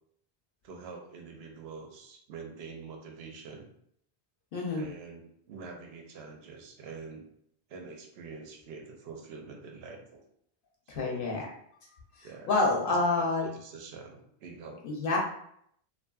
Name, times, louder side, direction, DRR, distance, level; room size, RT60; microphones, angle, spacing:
voice 1, 0.6-3.7 4.7-7.2 7.7-10.2 10.9-11.4 12.2-12.5 12.8-13.0 13.4-14.8, right 4 dB, 75° right, 2 dB, 0.8 m, -45 dB
voice 2, 4.5-4.8 10.9-11.4 12.2-13.5 14.8-15.2, left 3 dB, 65° left, -1 dB, 0.7 m, -28 dB
2.6 x 2.4 x 2.2 m, 0.69 s
omnidirectional pair, 1.1 m